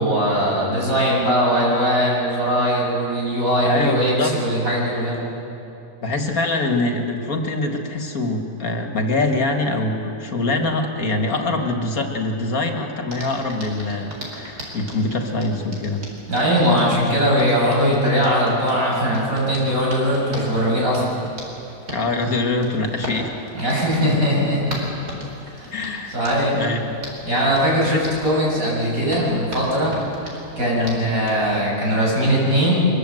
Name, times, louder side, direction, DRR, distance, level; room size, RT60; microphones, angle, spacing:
voice 1, 0.0-5.2 16.3-21.2 23.5-24.8 25.5-25.8 26.1-26.6 27.2-30.0 30.6-32.9, equal, 60° right, -4 dB, 7.5 m, -20 dB
voice 2, 3.7-4.4 6.0-16.1 21.9-23.3 25.7-26.1 26.5-26.9 27.9-28.0 30.8-31.1, left 2 dB, 65° left, 3 dB, 2.3 m, -24 dB
Hands, 13.1-31.4, right 1 dB, 90° right, 5.0 m, -38 dB
23.5 x 22.0 x 7.8 m, 2.8 s
omnidirectional pair, 1.6 m